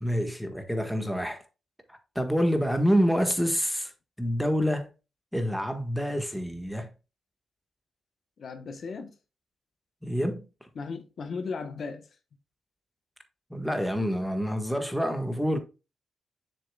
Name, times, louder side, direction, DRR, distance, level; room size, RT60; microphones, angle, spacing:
voice 1, 0.0-1.4 2.1-3.9 4.2-4.9 5.3-6.9 10.0-10.4 13.5-15.6, equal, ahead, 1.5 m, -27 dB
voice 2, 8.4-9.1 10.7-12.1, left 4 dB, 60° left, 1.1 m, -36 dB
7.0 x 6.8 x 2.3 m
cardioid pair, 75°, 0 cm